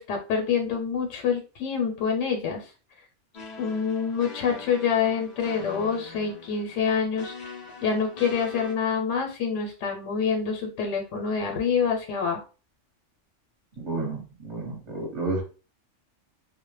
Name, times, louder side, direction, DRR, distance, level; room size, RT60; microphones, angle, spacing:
voice 1, 0.0-2.7 3.6-7.3 7.8-12.4, left 6 dB, 90° left, 3 dB, 0.9 m, -26 dB
sound 1, 3.3-8.7, left 3 dB, 45° left, 0.6 m, -43 dB
voice 2, 13.8-15.4, right 3 dB, 30° right, -3 dB, 0.8 m, -31 dB
2.1 x 2.0 x 3.0 m, 0.34 s
omnidirectional pair, 1.3 m